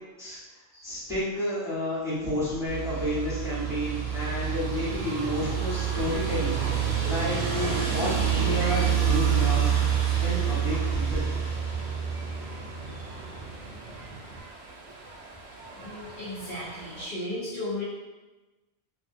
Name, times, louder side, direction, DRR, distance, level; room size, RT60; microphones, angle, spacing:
voice 1, 0.8-9.7 10.2-11.3, equal, 5° right, -12 dB, 1.0 m, -31 dB
sound 1, 2.7-14.4, right 8 dB, 55° right, 0.7 m, -28 dB
sound 2, 5.0-17.1, right 2 dB, 85° right, 0.8 m, -45 dB
voice 2, 15.7-17.8, left 1 dB, 55° left, -9 dB, 0.8 m, -36 dB
2.5 x 2.4 x 2.5 m, 1.2 s
omnidirectional pair, 1.1 m